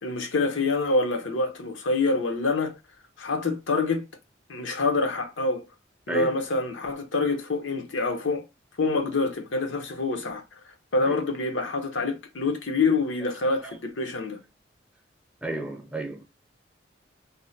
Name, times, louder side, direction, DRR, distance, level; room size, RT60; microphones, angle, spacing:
voice 1, 0.0-2.7 3.2-4.0 4.5-5.6 6.1-8.4 8.8-10.4 10.9-14.4, left 3 dB, 85° left, 0.7 m, -26 dB
voice 2, 15.4-16.2, right 1 dB, 5° right, 0.4 m, -32 dB
2.7 x 2.1 x 3.8 m
head